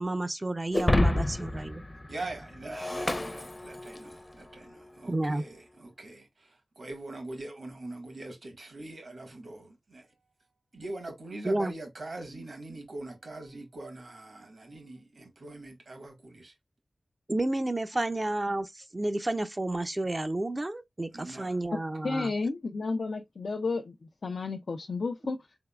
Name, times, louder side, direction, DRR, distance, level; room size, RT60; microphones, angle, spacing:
voice 1, 0.0-1.8 5.1-5.4 11.4-11.7 17.3-22.3, right 2 dB, 35° right, 0.4 m, -31 dB
Shatter, 0.7-4.2, left 1 dB, 30° left, 0.6 m, -29 dB
voice 2, 2.1-10.1 10.7-16.5 21.1-21.6, right 2 dB, 70° right, 1.4 m, -43 dB
voice 3, 22.0-23.9 24.2-25.4, left 3 dB, 75° left, 0.4 m, -32 dB
3.9 x 3.5 x 2.2 m
cardioid pair, 45°, 0 cm